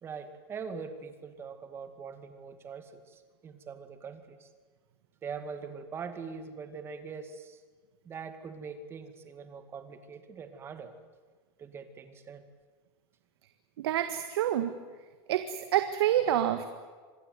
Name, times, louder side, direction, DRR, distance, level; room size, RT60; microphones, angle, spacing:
voice 1, 0.0-4.5 5.2-7.6 8.1-10.9 11.6-12.4, right 5 dB, 20° right, 9 dB, 2.2 m, -42 dB
voice 2, 13.8-14.7 15.3-16.7, right 11 dB, 80° right, 9 dB, 1.7 m, -27 dB
26.5 x 20.0 x 9.5 m, 1.5 s
supercardioid pair, 165°, 13 cm